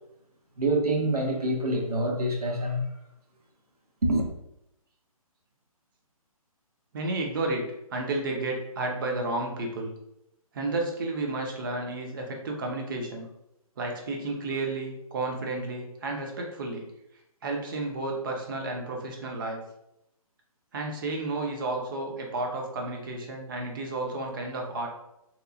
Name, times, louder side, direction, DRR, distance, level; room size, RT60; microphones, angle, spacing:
voice 1, 0.6-2.8 4.0-4.3, right 1 dB, 85° right, 0.7 m, -26 dB
voice 2, 6.9-7.6 7.9-9.9 10.5-13.3 13.8-16.9 17.4-19.6 20.7-24.9, right 2 dB, 35° right, 0.5 m, -32 dB
2.9 x 2.3 x 2.3 m
figure-of-eight pair, 135°, 19 cm